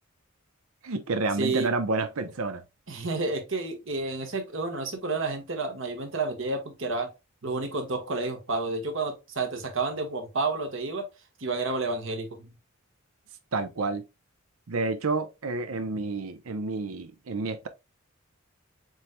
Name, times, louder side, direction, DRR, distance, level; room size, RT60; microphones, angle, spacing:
voice 1, 0.8-2.6 13.5-14.1 14.7-17.7, right 3 dB, 85° right, 0.7 m, -29 dB
voice 2, 1.4-1.7 2.9-7.1 7.4-11.1 11.4-12.5, right 3 dB, 65° right, 1.4 m, -30 dB
7.2 x 3.2 x 2.2 m
head